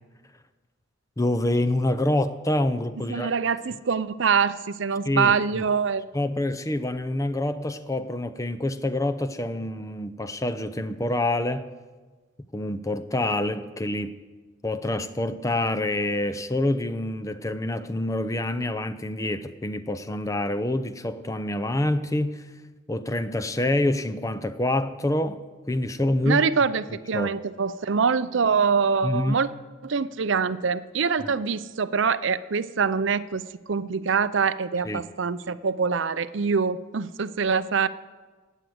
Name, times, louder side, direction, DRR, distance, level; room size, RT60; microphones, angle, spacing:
voice 1, 1.2-3.3 5.0-5.6 6.1-11.7 12.5-14.2 14.6-22.5 22.9-26.4 27.1-27.3 29.0-29.4 31.2-31.3 34.8-35.0, left 1 dB, 15° left, 10 dB, 0.6 m, -26 dB
voice 2, 3.1-6.0 26.2-29.5 29.8-33.4 33.7-37.9, right 5 dB, 65° right, 15 dB, 0.6 m, -24 dB
16.5 x 9.1 x 7.8 m, 1.3 s
head